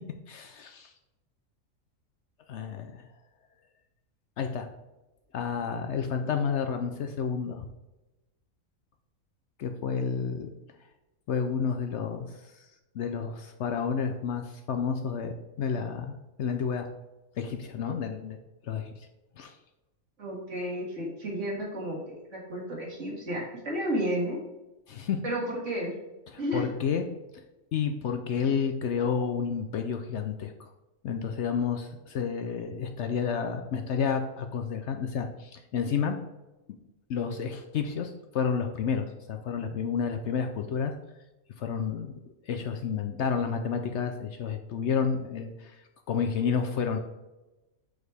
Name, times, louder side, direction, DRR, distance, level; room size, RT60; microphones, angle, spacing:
voice 1, 0.3-0.9 2.5-3.1 4.4-4.7 5.3-7.7 9.6-10.5 11.3-12.7 12.9-16.9 17.4-18.4 18.6-19.1 19.4-19.6 24.9-25.2 26.3-27.0 27.7-30.7 31.0-36.1 37.1-41.0 41.6-42.1 42.5-47.0, left 6 dB, 65° left, 6 dB, 0.8 m, -30 dB
voice 2, 20.2-22.0 22.3-24.4 25.2-25.9 26.4-26.6, equal, 60° right, -3 dB, 2.2 m, -32 dB
6.3 x 4.9 x 3.4 m, 1.0 s
omnidirectional pair, 1.4 m